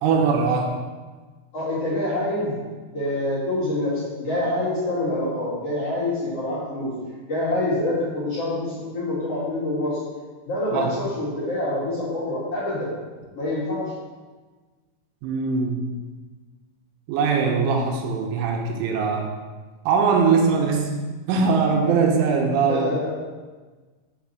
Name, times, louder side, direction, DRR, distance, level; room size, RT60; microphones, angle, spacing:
voice 1, 0.0-0.8 10.7-10.9 15.2-15.9 17.1-19.3 19.9-20.9 21.3-22.9, right 5 dB, 85° right, 2 dB, 3.2 m, -21 dB
voice 2, 1.5-2.6 2.9-6.9 7.3-10.0 10.4-12.9 13.4-13.9 22.7-23.1, left 1 dB, 40° left, -11 dB, 2.5 m, -26 dB
7.0 x 4.9 x 5.8 m, 1.3 s
omnidirectional pair, 5.7 m